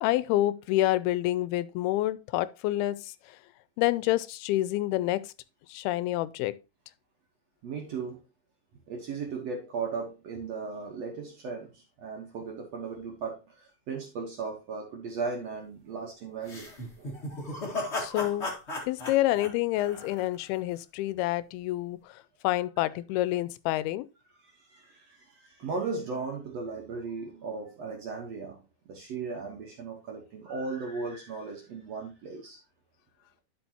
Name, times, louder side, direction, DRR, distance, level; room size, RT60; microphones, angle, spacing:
voice 1, 0.0-3.1 3.8-5.3 5.7-6.6 18.0-18.5 18.9-24.1, left 16 dB, 90° left, 2.5 m, -28 dB
voice 2, 7.6-8.2 8.9-16.7 17.0-17.1 24.4-32.6, right 4 dB, 65° right, 1.7 m, -37 dB
sound 1, 16.4-20.6, left 2 dB, 40° left, 0.9 m, -36 dB
11.5 x 5.3 x 2.8 m
omnidirectional pair, 4.4 m